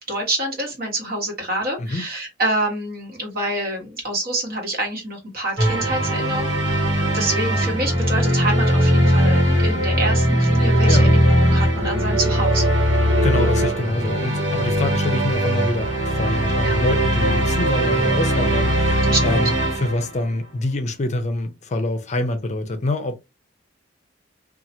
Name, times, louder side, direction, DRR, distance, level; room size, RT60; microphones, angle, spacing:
voice 1, 0.1-12.8 16.6-16.8 19.0-19.5, right 1 dB, 55° right, 1.4 m, -27 dB
sound 1, 5.6-20.3, equal, 80° right, 1.3 m, -19 dB
voice 2, 10.9-11.2 13.2-23.2, left 2 dB, 40° left, 0.5 m, -26 dB
2.8 x 2.4 x 2.7 m
head